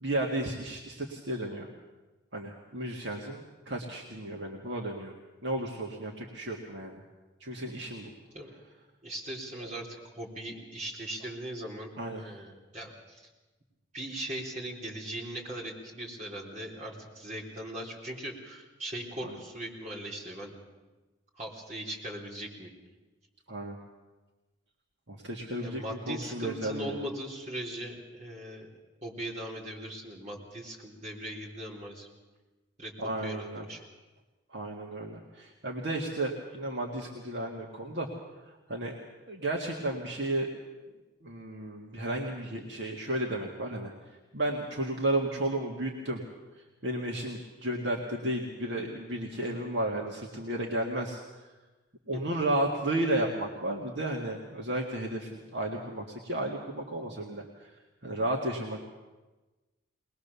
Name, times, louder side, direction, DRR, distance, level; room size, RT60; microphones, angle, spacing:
voice 1, 0.0-1.7 2.3-5.1 5.4-7.0 7.4-8.1 12.0-12.2 19.2-19.3 23.5-23.8 25.1-27.0 33.0-33.7 34.5-38.1 38.5-39.0 39.3-40.5 41.2-43.9 44.3-46.2 46.8-51.2 52.1-57.7 58.0-58.8, right 1 dB, 60° right, -1 dB, 1.8 m, -33 dB
voice 2, 9.0-13.3 13.9-20.5 21.4-22.7 25.6-28.7 29.0-32.1 32.8-32.9 33.2-33.9 52.1-52.2, right 1 dB, 35° right, -2 dB, 3.7 m, -39 dB
21.5 x 20.5 x 6.9 m, 1.2 s
head